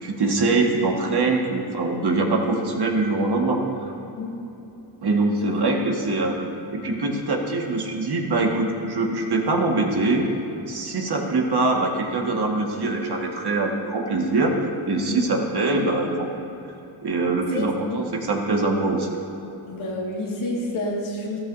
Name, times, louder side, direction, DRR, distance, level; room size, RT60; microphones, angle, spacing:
voice 1, 0.0-3.9 5.0-6.4 6.7-10.2 10.7-14.6 14.9-16.3 17.0-19.1, right 3 dB, 55° right, 0 dB, 1.8 m, -23 dB
voice 2, 4.0-4.3 5.4-5.5 6.8-7.0 14.9-15.3 17.5-18.0 19.7-21.4, left 2 dB, 85° left, -3 dB, 2.2 m, -29 dB
13.5 x 13.0 x 2.7 m, 3.0 s
cardioid pair, 65°, 47 cm